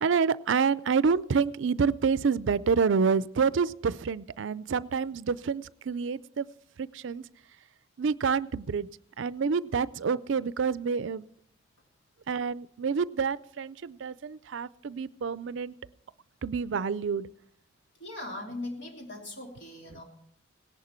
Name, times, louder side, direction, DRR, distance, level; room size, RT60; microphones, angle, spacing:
voice 1, 0.0-6.5 6.8-7.2 8.0-8.9 9.2-11.2 12.3-15.7 16.4-17.3, right 5 dB, 70° right, 18 dB, 0.4 m, -28 dB
voice 2, 18.0-20.0, left 1 dB, 60° left, 0 dB, 3.1 m, -39 dB
17.5 x 10.5 x 4.4 m, 0.69 s
head